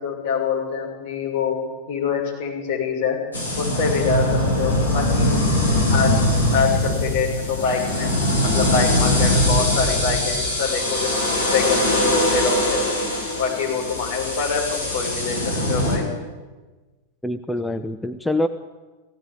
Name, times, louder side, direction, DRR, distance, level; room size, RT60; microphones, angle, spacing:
voice 1, 0.0-1.6 1.9-3.2 3.6-5.4 5.9-6.1 6.5-12.8 13.4-15.4 15.7-16.0, left 6 dB, 50° left, -2 dB, 6.7 m, -25 dB
sound 1, 3.3-16.0, left 1 dB, 85° left, 6.0 m, -21 dB
voice 2, 17.2-18.5, left 1 dB, 5° left, 8 dB, 0.8 m, -25 dB
17.5 x 16.5 x 9.2 m, 1.3 s
figure-of-eight pair, 90°, 0 cm